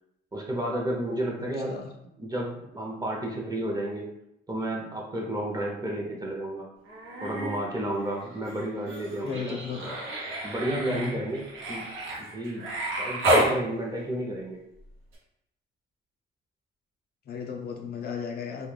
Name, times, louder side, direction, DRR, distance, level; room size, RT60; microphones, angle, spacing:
voice 1, 0.3-1.8 2.2-4.1 4.5-6.7 7.2-9.6 10.4-11.4 11.7-11.8 12.2-12.6 13.0-14.6, right 1 dB, 20° right, 0 dB, 0.6 m, -31 dB
Human voice, 6.8-7.6 7.9-13.5 15.1-15.2, right 1 dB, 90° right, 0.7 m, -30 dB
voice 2, 9.2-9.9 10.9-11.2 17.3-18.7, left 6 dB, 50° left, 2 dB, 0.4 m, -35 dB
2.3 x 2.1 x 3.1 m, 0.80 s
cardioid pair, 90°, 20 cm